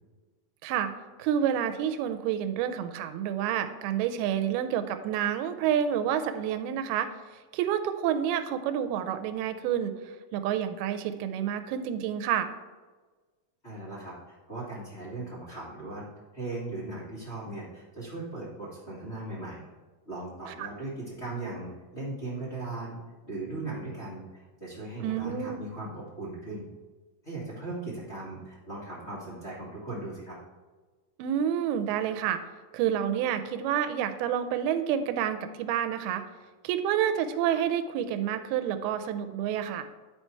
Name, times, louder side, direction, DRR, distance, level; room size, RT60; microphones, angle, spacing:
voice 1, 0.6-0.9 1.2-7.1 7.5-12.5 20.6-20.7 25.0-25.6 31.2-32.4 32.7-36.2 36.6-39.9, right 9 dB, 85° right, 9 dB, 2.5 m, -29 dB
voice 2, 13.6-16.0 16.3-19.7 20.0-23.0 23.2-26.7 27.2-30.4, right 2 dB, 35° left, -9 dB, 1.0 m, -38 dB
10.5 x 4.4 x 4.5 m, 1.3 s
omnidirectional pair, 4.4 m